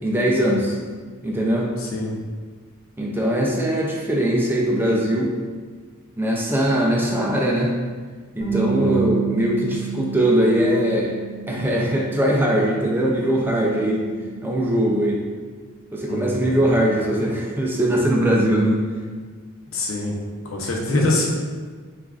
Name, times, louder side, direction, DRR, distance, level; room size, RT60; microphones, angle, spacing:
voice 1, 0.0-0.8 1.2-1.7 3.0-5.3 6.2-7.8 8.4-11.2 11.5-14.0 14.4-15.2 15.9-18.8, right 1 dB, 10° right, -2 dB, 0.4 m, -21 dB
voice 2, 1.8-2.1 8.7-9.0 16.1-16.6 19.7-20.1 20.4-21.3, left 2 dB, 70° left, -2 dB, 0.8 m, -24 dB
Bass guitar, 8.4-14.7, right 7 dB, 15° left, 1.3 m, -30 dB
6.9 x 2.5 x 2.4 m, 1.5 s
head